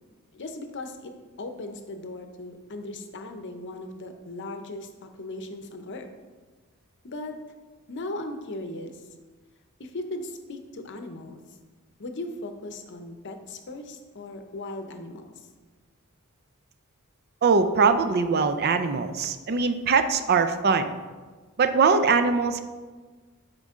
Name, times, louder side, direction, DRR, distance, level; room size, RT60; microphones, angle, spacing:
voice 1, 0.3-6.1 7.0-7.4 7.9-9.0 9.8-11.4 12.0-15.3, left 2 dB, 55° left, 7 dB, 0.7 m, -38 dB
voice 2, 17.4-20.9 21.6-22.6, right 5 dB, 50° right, 9 dB, 0.5 m, -22 dB
8.0 x 5.1 x 3.6 m, 1.4 s
head